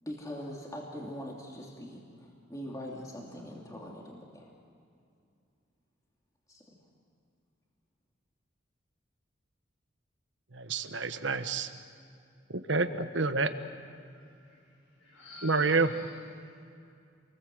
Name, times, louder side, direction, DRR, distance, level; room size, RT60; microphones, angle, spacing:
voice 1, 0.0-4.5 6.5-6.6, equal, 20° left, -2 dB, 2.9 m, -42 dB
voice 2, 10.5-11.7 12.7-13.5 15.4-15.9, right 3 dB, 70° right, 9 dB, 1.3 m, -28 dB
voice 3, 14.1-14.5 15.0-16.0, left 4 dB, 85° left, -6 dB, 7.6 m, -47 dB
28.0 x 21.0 x 7.9 m, 2.4 s
head